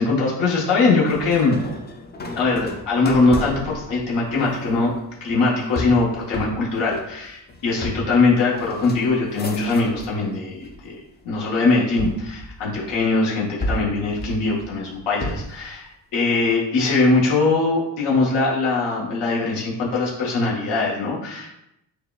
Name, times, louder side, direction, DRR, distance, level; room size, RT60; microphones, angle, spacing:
voice 1, 0.0-1.6 2.4-4.9 5.2-11.0 11.2-21.6, left 3 dB, 90° left, -5 dB, 1.2 m, -21 dB
sound 1, 1.1-10.2 10.6-11.3 12.0-13.1 13.6-15.7, left 1 dB, 25° left, 0.4 m, -33 dB
6.4 x 2.2 x 2.3 m, 0.83 s
cardioid pair, 135°, 41 cm